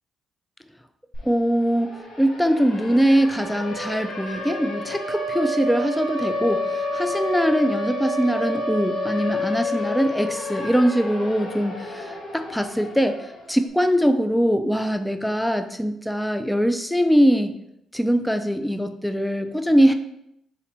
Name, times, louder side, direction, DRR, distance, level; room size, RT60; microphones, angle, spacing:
Siren, 1.1-1.2 1.5-13.6, left 1 dB, 70° left, 1.0 m, -30 dB
voice 1, 1.2-17.5 17.9-19.9, equal, 5° left, 8 dB, 0.3 m, -22 dB
4.0 x 2.9 x 4.3 m, 0.79 s
cardioid pair, 90°, 0 cm